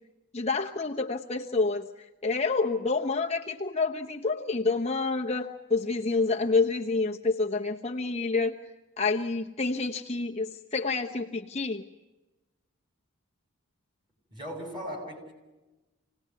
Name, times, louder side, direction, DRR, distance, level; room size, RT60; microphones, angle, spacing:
voice 1, 0.3-8.6 9.0-11.8, left 3 dB, 30° left, 1 dB, 1.0 m, -28 dB
voice 2, 14.3-15.3, equal, 20° right, 2 dB, 7.2 m, -38 dB
27.0 x 19.0 x 9.6 m, 1.1 s
head